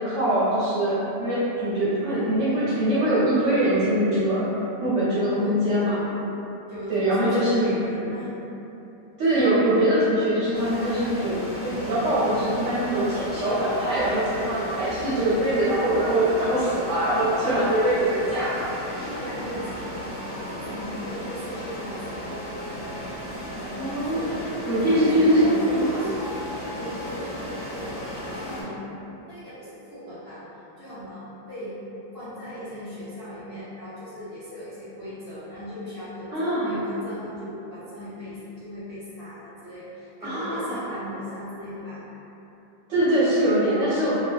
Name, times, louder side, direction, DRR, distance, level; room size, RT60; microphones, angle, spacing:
voice 1, 0.0-4.5 4.8-6.0 6.9-7.6 9.2-18.7 23.8-24.3 24.7-26.0 36.3-36.7 40.2-40.8 42.9-44.2, right 1 dB, 60° right, -11 dB, 0.8 m, -23 dB
voice 2, 5.4-6.0 6.7-8.3 17.2-17.9 19.0-20.4 20.7-22.2 23.5-28.9 29.3-30.4 30.8-31.7 32.1-42.0, left 1 dB, 85° left, -13 dB, 0.5 m, -37 dB
sound 1, 10.5-28.6, equal, 40° left, 0.9 m, -35 dB
3.0 x 2.2 x 2.4 m, 3.0 s
omnidirectional pair, 1.9 m